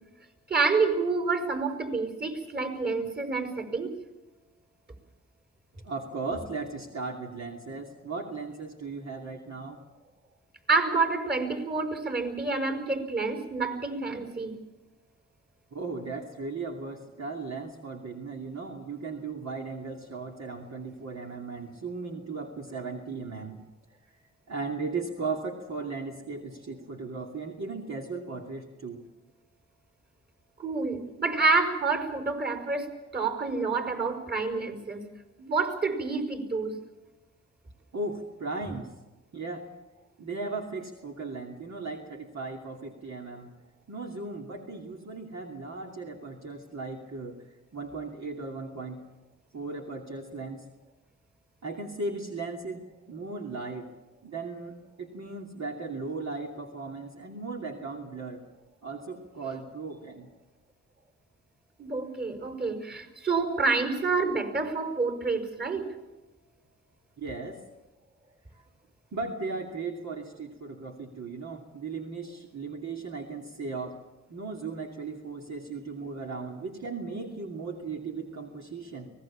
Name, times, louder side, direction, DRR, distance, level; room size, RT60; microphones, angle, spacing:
voice 1, 0.5-4.0 10.7-14.6 30.6-35.1 35.4-36.8 61.8-65.9, right 4 dB, 30° right, 7 dB, 5.3 m, -28 dB
voice 2, 5.8-9.8 15.7-23.6 24.5-29.0 37.9-38.9 39.3-39.7 40.2-43.5 43.9-47.4 47.7-49.0 49.5-50.6 51.6-53.9 54.2-58.4 58.8-60.3 67.2-67.6 69.1-74.0 74.3-79.1, right 3 dB, 60° right, 1 dB, 2.7 m, -37 dB
24.5 x 18.5 x 7.3 m, 1.1 s
cardioid pair, 60°, 31 cm